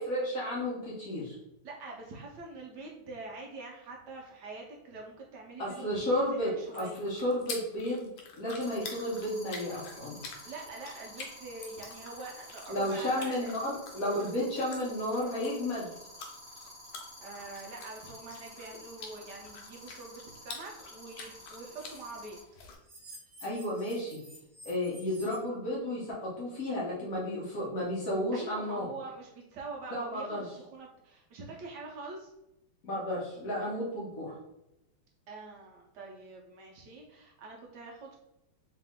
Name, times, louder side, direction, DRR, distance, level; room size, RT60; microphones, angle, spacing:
voice 1, 0.0-1.3 5.6-10.2 12.7-15.9 23.4-24.2 24.6-28.9 29.9-30.5 32.8-34.4, left 1 dB, 55° left, -5 dB, 1.0 m, -32 dB
voice 2, 1.6-6.1 6.4-7.0 10.4-13.5 17.2-22.4 28.3-32.3 35.3-38.2, right 3 dB, 70° right, -1 dB, 1.0 m, -44 dB
sound 1, 5.7-6.0 8.6-22.4 22.8-25.4, right 1 dB, 30° right, 0.9 m, -51 dB
sound 2, 6.6-22.8, left 4 dB, 75° left, 1.5 m, -48 dB
3.4 x 2.9 x 3.5 m, 0.88 s
omnidirectional pair, 2.4 m